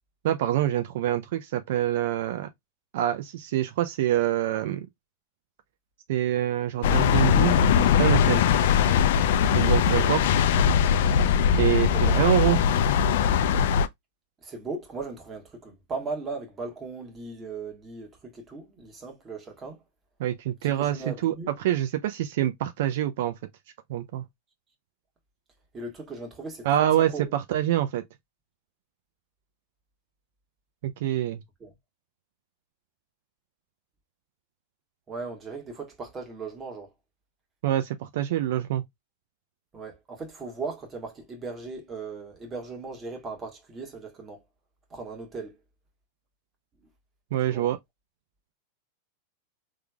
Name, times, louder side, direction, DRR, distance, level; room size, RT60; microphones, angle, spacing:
voice 1, 0.2-2.5 2.9-4.9 6.1-8.4 9.5-10.2 11.6-12.6 20.2-23.4 23.9-24.2 26.6-28.0 30.8-31.4 37.6-38.8 47.3-47.8, right 12 dB, 70° right, 0.5 m, -26 dB
sound 1, 6.8-13.9, left 7 dB, 70° left, 0.4 m, -21 dB
voice 2, 9.8-10.1 11.9-12.2 14.4-19.8 20.6-21.5 25.7-27.3 31.6-31.7 35.1-36.9 39.7-44.4 44.9-45.5 47.5-47.7, right 4 dB, 25° right, 1.5 m, -38 dB
3.6 x 3.2 x 2.3 m
supercardioid pair, 125°, 0 cm